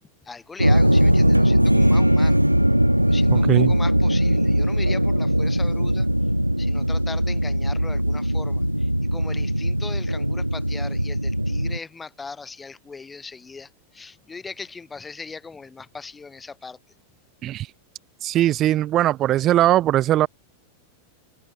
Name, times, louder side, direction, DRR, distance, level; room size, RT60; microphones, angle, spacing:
voice 1, 0.2-2.4 3.1-6.1 6.6-16.8, left 4 dB, 15° left, 3.2 m, -39 dB
sound 1, 0.6-11.8, equal, 90° right, 0.5 m, -20 dB
voice 2, 3.3-3.7 17.4-17.7 18.2-20.3, right 13 dB, 35° right, 0.7 m, -20 dB
open air
figure-of-eight pair, 90°, 0 cm